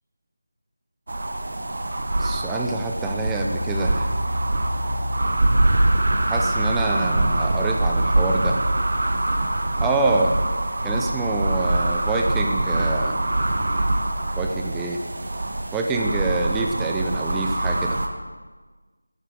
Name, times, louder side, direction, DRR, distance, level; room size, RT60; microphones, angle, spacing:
sound 1, 1.1-18.1, right 1 dB, 50° right, 1.3 m, -24 dB
voice 1, 2.2-4.1 6.3-8.6 9.8-10.3 10.8-13.2 14.4-15.0 15.7-18.0, right 3 dB, 5° right, 1 dB, 0.5 m, -26 dB
sound 2, 3.0-9.5, equal, 80° right, 1.9 m, -32 dB
10.5 x 7.4 x 7.9 m, 1.3 s
figure-of-eight pair, 170°, 0 cm